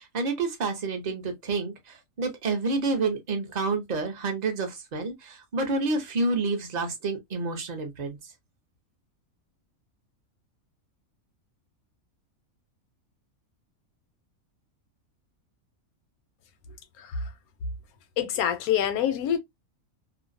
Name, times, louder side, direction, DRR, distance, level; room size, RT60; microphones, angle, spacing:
voice 1, 0.0-8.2, right 3 dB, 45° right, 0.6 m, -29 dB
voice 2, 17.0-17.3 18.2-19.4, left 9 dB, 85° left, 1.1 m, -26 dB
2.6 x 2.0 x 2.5 m
omnidirectional pair, 1.5 m